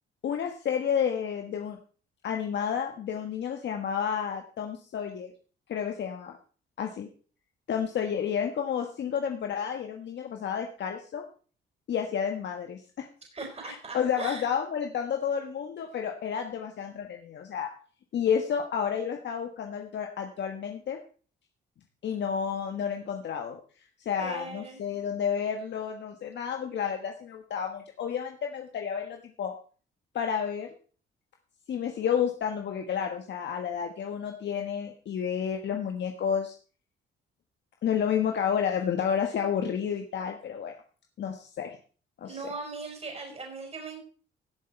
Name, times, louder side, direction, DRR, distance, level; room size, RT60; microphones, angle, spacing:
voice 1, 0.2-1.8 2.2-5.3 5.7-6.3 6.8-7.1 7.7-11.2 11.9-13.1 13.6-17.7 18.1-21.0 22.0-23.6 24.0-29.5 30.1-30.7 31.7-36.5 37.8-40.7 41.2-41.8 42.2-42.5, left 8 dB, 65° left, 4 dB, 1.5 m, -30 dB
voice 2, 13.3-14.4 24.2-24.8 42.2-44.0, right 3 dB, 30° right, 2 dB, 5.4 m, -39 dB
17.0 x 7.7 x 4.5 m, 0.40 s
cardioid pair, 90°, 20 cm